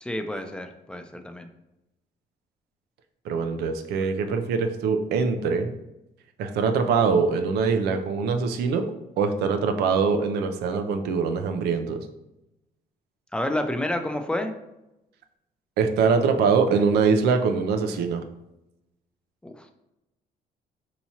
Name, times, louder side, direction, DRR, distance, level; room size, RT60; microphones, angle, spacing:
voice 1, 0.0-1.5 13.3-14.5 19.4-19.7, left 1 dB, 5° left, 6 dB, 0.4 m, -29 dB
voice 2, 3.3-5.7 6.4-12.1 15.8-18.2, right 5 dB, 85° right, 7 dB, 0.5 m, -23 dB
4.6 x 2.9 x 2.8 m, 0.93 s
cardioid pair, 110°, 16 cm